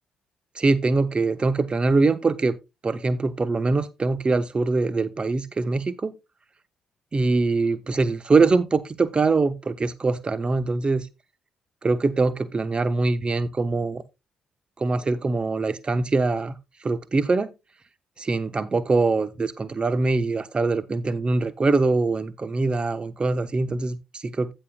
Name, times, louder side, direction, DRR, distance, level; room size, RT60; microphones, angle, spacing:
voice 1, 0.5-2.5 2.8-6.1 7.1-11.1 11.8-14.0 14.8-16.6 16.8-17.5 18.2-24.5, right 3 dB, 30° right, 0.8 m, -23 dB
15.0 x 5.5 x 2.3 m
figure-of-eight pair, 40°, 3 cm